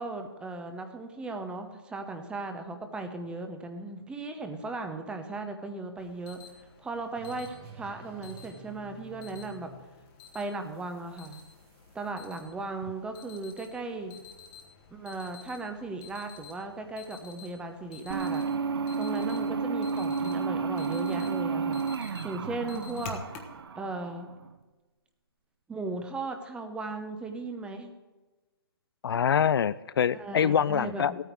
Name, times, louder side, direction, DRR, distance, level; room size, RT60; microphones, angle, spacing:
voice 1, 0.0-6.4 6.8-9.7 10.3-11.4 11.9-14.2 14.9-18.4 19.0-21.8 22.2-23.2 23.7-24.3 25.7-27.9 30.2-31.2, right 3 dB, 10° right, 6 dB, 0.9 m, -37 dB
Alarm, 6.0-23.6, left 6 dB, 30° left, 1.2 m, -51 dB
sound 1, 7.1-12.1, right 4 dB, 35° right, 1.5 m, -51 dB
sound 2, 18.1-24.5, right 5 dB, 75° right, 0.8 m, -31 dB
voice 2, 29.0-31.1, left 8 dB, 70° left, 17 dB, 0.4 m, -25 dB
14.5 x 9.2 x 4.6 m, 1.2 s
hypercardioid pair, 145°, 13 cm